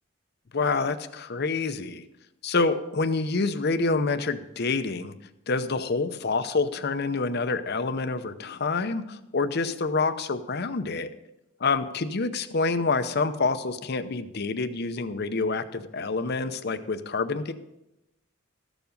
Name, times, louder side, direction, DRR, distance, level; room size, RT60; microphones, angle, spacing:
voice 1, 0.5-2.0 2.4-5.1 5.5-11.1 11.6-17.5, left 3 dB, 55° left, 10 dB, 0.7 m, -27 dB
13.5 x 7.1 x 5.3 m, 0.89 s
head